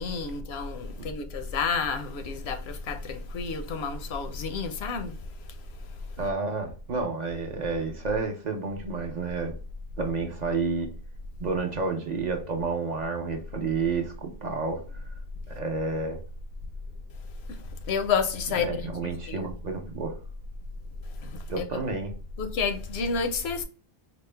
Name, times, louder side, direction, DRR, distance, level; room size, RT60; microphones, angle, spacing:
voice 1, 0.0-5.1 17.9-19.5 21.2-21.7 22.4-23.6, left 5 dB, 85° left, 0.9 m, -30 dB
voice 2, 6.2-9.5 10.0-10.9 11.4-14.8 15.5-16.2 18.6-20.2 21.5-22.1, right 4 dB, 50° right, 0.7 m, -30 dB
4.2 x 2.0 x 3.2 m
omnidirectional pair, 1.0 m